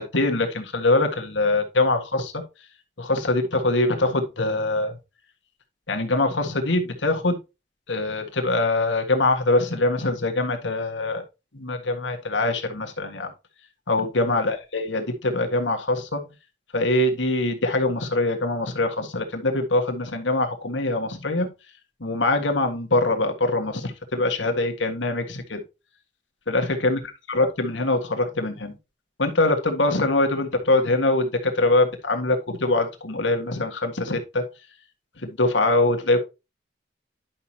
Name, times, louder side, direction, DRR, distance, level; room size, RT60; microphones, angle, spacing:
voice 1, 0.0-2.4 3.0-5.0 5.9-7.4 7.9-11.2 11.5-13.3 13.9-16.2 16.7-21.5 22.0-25.6 26.5-27.0 27.3-28.7 29.2-34.4 35.2-36.2, left 2 dB, 90° left, 5 dB, 1.7 m, -23 dB
10.5 x 5.8 x 2.9 m, 0.26 s
head